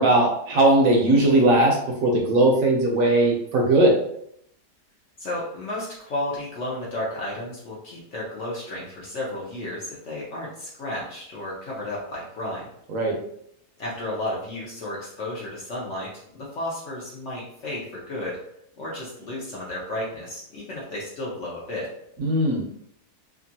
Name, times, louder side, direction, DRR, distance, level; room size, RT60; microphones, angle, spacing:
voice 1, 0.0-1.8 2.0-3.9 12.9-13.2 22.2-22.6, right 2 dB, 65° right, -1 dB, 0.9 m, -19 dB
voice 2, 5.2-12.7 13.8-18.4 18.8-21.9, left 1 dB, 60° left, -5 dB, 0.8 m, -33 dB
2.9 x 2.4 x 2.7 m, 0.73 s
omnidirectional pair, 1.8 m